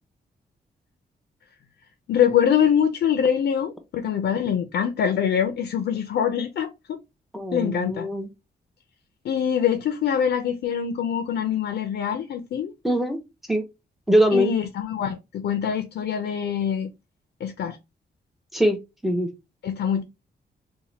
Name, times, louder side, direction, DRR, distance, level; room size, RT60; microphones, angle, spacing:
voice 1, 2.1-7.0 7.5-8.1 9.2-12.7 14.3-16.9 17.4-17.8 19.6-20.0, left 8 dB, 75° left, 0.5 m, -24 dB
voice 2, 7.3-8.3 12.8-13.2 13.5-13.6 14.1-14.5 18.5-19.3, equal, ahead, 0.7 m, -22 dB
2.8 x 2.2 x 4.1 m
wide cardioid pair, 135°, 18 cm